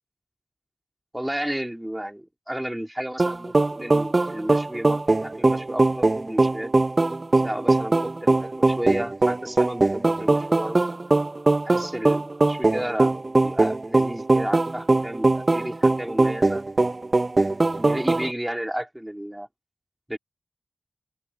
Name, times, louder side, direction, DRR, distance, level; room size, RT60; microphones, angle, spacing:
voice 1, 1.1-6.7 7.4-10.9 11.6-13.1 13.4-16.9 17.8-19.5 20.1-20.2, right 1 dB, 10° right, 3.4 m, -32 dB
sound 1, 3.2-18.3, right 2 dB, 40° right, 0.9 m, -21 dB
open air
cardioid pair, 55°, 0 cm